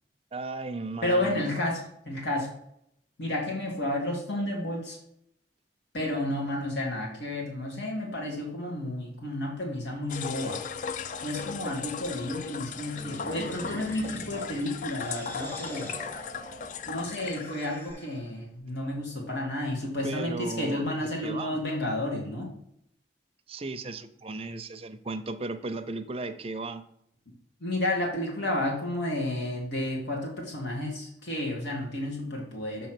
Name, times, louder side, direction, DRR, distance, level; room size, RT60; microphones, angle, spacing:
voice 1, 0.3-1.7 20.0-21.6 23.5-26.9, right 3 dB, 30° right, 9 dB, 0.5 m, -36 dB
voice 2, 1.0-2.5 3.2-5.0 5.9-10.7 11.2-15.9 16.9-22.5 27.3-27.4 27.6-32.9, left 1 dB, 70° left, 0 dB, 1.6 m, -31 dB
sound 1, 10.1-17.9, left 6 dB, 45° left, 0.3 m, -37 dB
sound 2, 12.8-18.3, equal, 10° left, 0.9 m, -43 dB
7.0 x 3.1 x 5.9 m, 0.74 s
head